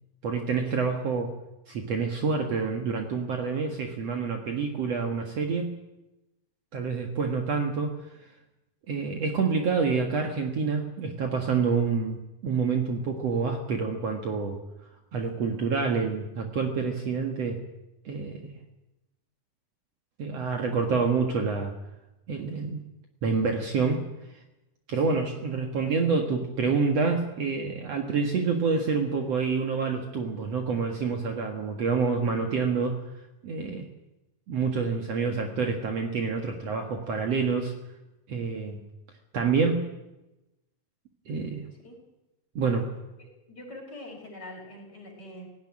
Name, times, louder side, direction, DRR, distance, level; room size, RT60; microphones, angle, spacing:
voice 1, 0.2-1.3 1.7-5.7 6.7-8.0 8.9-14.6 15.1-17.6 18.1-18.6 20.2-21.7 22.3-22.8 23.2-24.0 24.9-33.0 33.4-33.9 34.5-37.7 38.3-38.8 39.3-39.9 41.3-41.6 42.6-42.9, right 5 dB, 55° right, 3 dB, 2.5 m, -27 dB
voice 2, 43.2-45.5, left 1 dB, 30° left, 0 dB, 6.1 m, -44 dB
17.5 x 17.0 x 10.0 m, 0.97 s
omnidirectional pair, 3.8 m